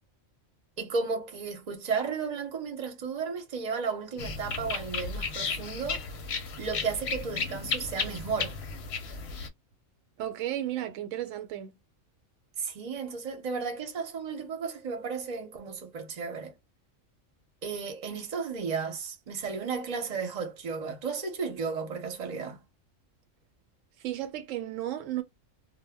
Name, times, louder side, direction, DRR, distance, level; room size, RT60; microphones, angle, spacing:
voice 1, 0.8-6.0 6.6-8.6 12.6-16.5 17.6-22.6, right 5 dB, 40° right, 0.7 m, -34 dB
sound 1, 4.2-9.5, left 5 dB, 60° left, 0.8 m, -34 dB
voice 2, 10.2-11.7 24.0-25.2, right 13 dB, 75° right, 0.9 m, -34 dB
2.1 x 2.1 x 3.4 m
omnidirectional pair, 1.4 m